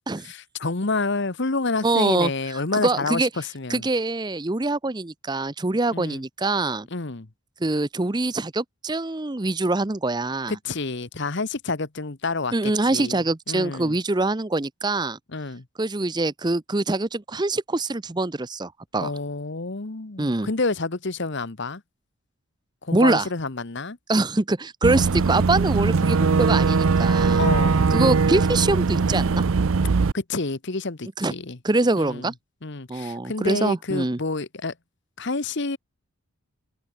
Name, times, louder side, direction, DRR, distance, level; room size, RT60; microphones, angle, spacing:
voice 1, 0.2-3.9 5.9-6.2 6.9-7.3 10.5-14.0 15.3-15.6 19.0-21.8 22.8-24.0 27.4-27.9 30.1-31.6 32.0-32.3 32.6-34.7 35.2-35.8, left 3 dB, 50° left, 1.1 m, -29 dB
voice 2, 1.8-2.3 2.8-3.3 3.7-6.9 7.6-10.6 12.5-15.2 15.8-19.1 20.2-20.5 22.9-23.3 24.1-27.5 27.9-29.4 31.2-31.3 31.6-32.3 32.9-34.2, right 2 dB, 20° right, 0.6 m, -24 dB
Boat Water vehicle / Engine, 24.8-30.1, right 4 dB, 65° right, 0.6 m, -20 dB
open air
head